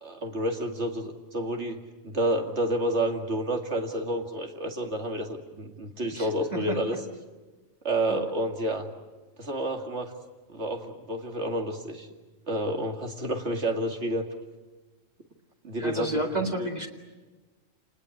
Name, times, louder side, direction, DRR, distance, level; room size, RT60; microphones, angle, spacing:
voice 1, 0.0-7.0 7.8-8.9 9.4-10.1 10.5-12.1 12.5-14.3 15.6-16.2 16.6-16.7, right 1 dB, 60° right, 3 dB, 2.6 m, -29 dB
voice 2, 6.1-7.0 8.1-8.2 15.8-16.9, equal, 30° right, 1 dB, 2.5 m, -31 dB
28.5 x 20.0 x 9.9 m, 1.3 s
omnidirectional pair, 1.3 m